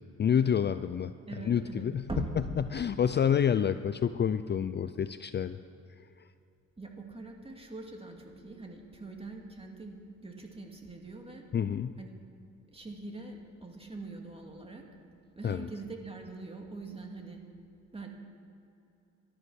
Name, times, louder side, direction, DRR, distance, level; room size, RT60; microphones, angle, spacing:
voice 1, 0.2-1.1 1.4-2.0 2.6-5.6 11.5-11.9 15.4-15.7, left 8 dB, 35° left, 12 dB, 0.5 m, -28 dB
voice 2, 1.3-2.4 6.8-11.4 12.0-12.1 12.7-14.8 15.3-17.4 17.9-18.1, right 3 dB, 20° right, 2 dB, 2.6 m, -42 dB
16.0 x 12.5 x 6.4 m, 2.7 s
cardioid pair, 90°, 30 cm